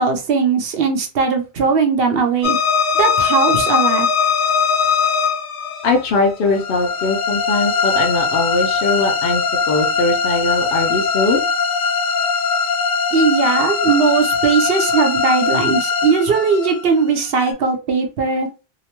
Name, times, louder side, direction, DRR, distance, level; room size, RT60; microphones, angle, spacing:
voice 1, 0.0-2.6 2.9-4.1 13.1-18.5, right 5 dB, 65° right, 0.8 m, -18 dB
sound 1, 2.4-17.5, left 5 dB, 85° left, 0.9 m, -20 dB
voice 2, 5.8-9.4 9.7-11.4, left 3 dB, 65° left, 0.7 m, -20 dB
2.8 x 2.1 x 2.9 m
omnidirectional pair, 1.1 m